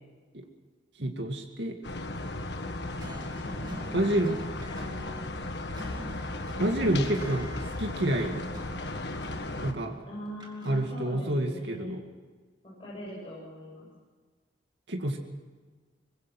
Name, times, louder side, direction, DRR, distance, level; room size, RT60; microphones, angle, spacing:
voice 1, 1.0-1.8 3.9-4.4 6.6-8.4 9.6-10.0 10.6-12.0 14.9-15.2, right 1 dB, 65° right, 2 dB, 2.2 m, -28 dB
sound 1, 1.8-9.7, left 2 dB, 65° left, 1.6 m, -36 dB
sound 2, 2.8-11.3, equal, 25° right, 2.7 m, -46 dB
voice 2, 3.3-3.7 10.1-12.0 12.8-13.9, equal, 25° left, -7 dB, 7.7 m, -41 dB
24.0 x 21.5 x 6.1 m, 1.4 s
head